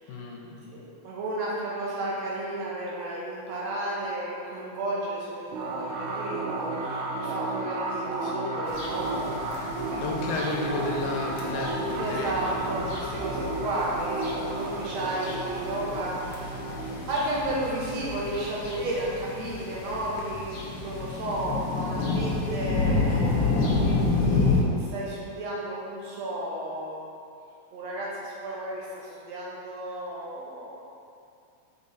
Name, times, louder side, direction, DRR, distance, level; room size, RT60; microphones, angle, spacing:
voice 1, 0.1-0.7 9.9-12.7, left 2 dB, 85° left, -1 dB, 2.3 m, -32 dB
voice 2, 0.7-9.2 10.1-10.2 12.0-27.0 27.7-30.8, right 1 dB, 70° right, -5 dB, 2.0 m, -33 dB
sound 1, 5.5-18.7, right 2 dB, 90° right, 2.1 m, -33 dB
sound 2, 8.7-24.6, left 3 dB, 70° left, 1.6 m, -30 dB
5.2 x 5.1 x 4.1 m, 2.5 s
omnidirectional pair, 3.5 m